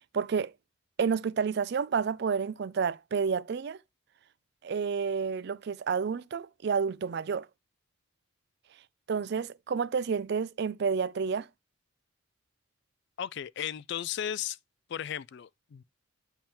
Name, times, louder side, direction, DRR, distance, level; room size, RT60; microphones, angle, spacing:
voice 1, 0.1-0.5 1.0-3.8 4.6-7.5 9.1-11.5, right 6 dB, 50° right, 0.4 m, -30 dB
voice 2, 13.2-14.6 14.9-15.8, left 9 dB, 55° left, 0.3 m, -35 dB
8.9 x 3.5 x 4.3 m
head